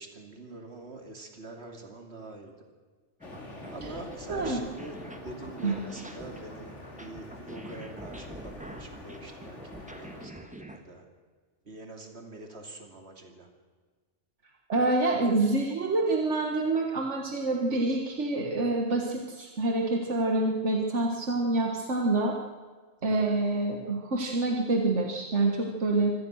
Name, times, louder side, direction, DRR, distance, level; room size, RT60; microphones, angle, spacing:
voice 1, 0.0-2.5 3.7-11.0 11.6-13.5 23.0-23.3, right 2 dB, 65° right, 4 dB, 2.9 m, -45 dB
sound 1, 3.2-10.3, left 2 dB, 90° left, 3.3 m, -45 dB
sound 2, 3.2-10.8, equal, 5° right, 1.5 m, -45 dB
voice 2, 4.3-4.6 5.6-5.8 14.7-22.4 23.0-26.1, right 2 dB, 85° right, 1 dB, 1.9 m, -27 dB
24.5 x 18.0 x 6.4 m, 1.4 s
omnidirectional pair, 1.2 m